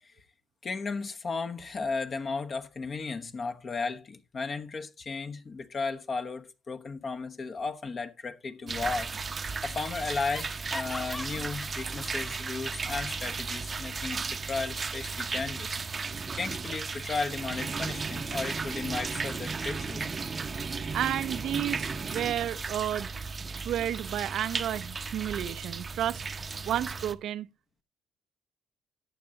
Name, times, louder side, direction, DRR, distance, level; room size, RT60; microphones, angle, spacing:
voice 1, 0.6-9.1 9.6-20.1, left 4 dB, 40° left, 1.1 m, -35 dB
Laughter, 8.6-9.2 9.4-9.5 9.9-12.4, left 1 dB, 10° left, 0.8 m, -43 dB
sound 1, 8.7-27.1, right 4 dB, 30° right, 0.7 m, -35 dB
voice 2, 20.9-23.1 23.6-26.2 26.6-27.5, right 11 dB, 70° right, 0.5 m, -31 dB
14.0 x 8.7 x 2.8 m
cardioid pair, 110°, 0 cm